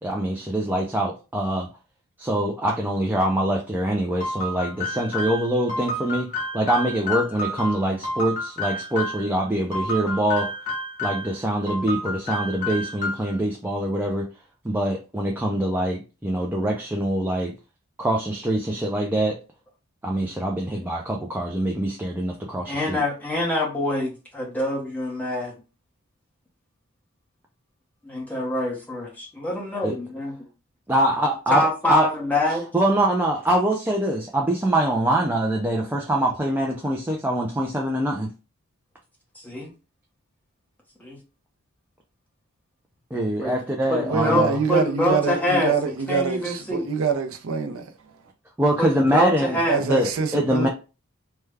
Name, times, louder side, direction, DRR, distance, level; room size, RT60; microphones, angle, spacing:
voice 1, 0.0-1.7 2.2-6.3 6.5-10.5 11.0-14.3 14.6-17.5 18.0-19.4 20.0-23.0 29.8-29.9 30.9-32.1 32.7-38.3 43.1-44.6 48.6-50.7, right 1 dB, 10° right, 0.3 m, -24 dB
sound 1, 4.2-9.3 9.7-11.3 11.7-13.4, left 1 dB, 35° left, 0.8 m, -30 dB
voice 2, 22.7-25.5 28.0-30.4 31.5-32.6 39.4-39.7 41.0-41.2 43.4-43.6 43.9-45.7 46.1-46.9 48.8-49.8, left 1 dB, 5° left, 0.9 m, -25 dB
voice 3, 44.1-48.3 49.7-50.7, right 5 dB, 65° right, 0.5 m, -25 dB
3.4 x 2.2 x 3.2 m
head